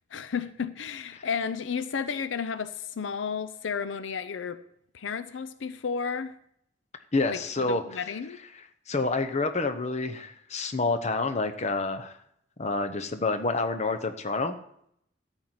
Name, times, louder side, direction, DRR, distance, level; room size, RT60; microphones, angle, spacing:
voice 1, 0.1-4.6 4.9-6.3 7.3-8.4, left 6 dB, 90° left, 12 dB, 0.5 m, -32 dB
voice 2, 7.1-8.0 8.5-12.1 12.6-14.5, left 3 dB, 40° left, 8 dB, 0.9 m, -28 dB
13.5 x 4.5 x 7.9 m, 0.73 s
head